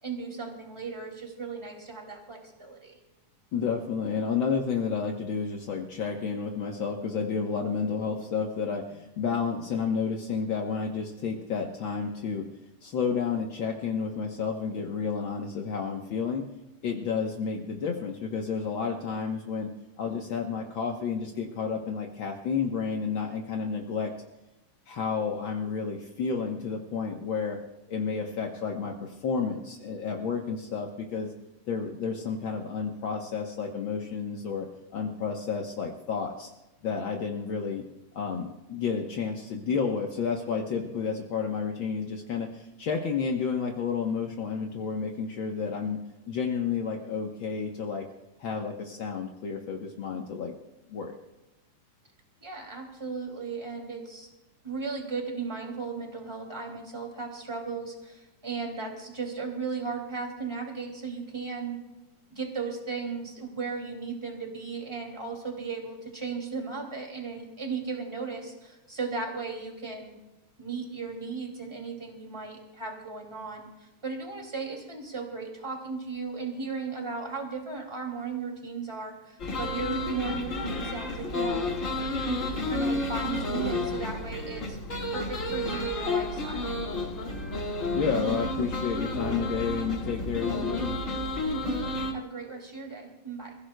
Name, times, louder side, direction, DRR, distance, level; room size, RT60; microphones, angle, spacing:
voice 1, 0.0-3.0 52.4-54.3 54.6-61.8 62.3-70.2 70.6-73.7 74.0-81.6 82.2-84.8 85.1-86.8 91.5-91.8 92.1-93.6, right 4 dB, 10° right, 1 dB, 1.9 m, -36 dB
voice 2, 3.5-12.5 12.8-16.5 16.8-19.7 20.0-24.1 24.9-27.6 27.9-31.3 31.7-36.5 36.8-37.8 38.1-46.0 46.3-48.1 48.4-50.6 50.9-51.1 87.9-91.0, left 5 dB, 75° left, 1 dB, 1.1 m, -31 dB
sound 1, 79.4-92.1, left 2 dB, 35° left, 1.5 m, -31 dB
28.5 x 16.0 x 2.2 m, 0.99 s
omnidirectional pair, 3.7 m